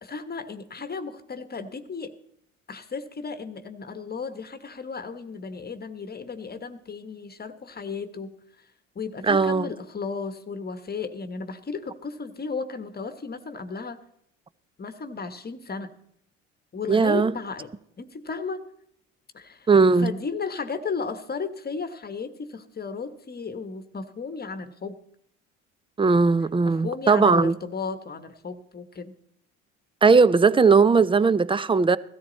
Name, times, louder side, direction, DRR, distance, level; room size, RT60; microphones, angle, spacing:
voice 1, 0.0-2.1 2.7-8.3 8.9-14.0 14.8-15.9 16.7-17.7 18.0-18.6 19.3-19.7 20.0-25.0 26.6-29.1, left 5 dB, 25° left, 1.3 m, -34 dB
voice 2, 9.2-9.7 16.9-17.3 19.7-20.1 26.0-27.6 30.0-32.0, right 4 dB, 15° right, 0.6 m, -18 dB
17.0 x 13.5 x 4.0 m
hypercardioid pair, 75°, 37 cm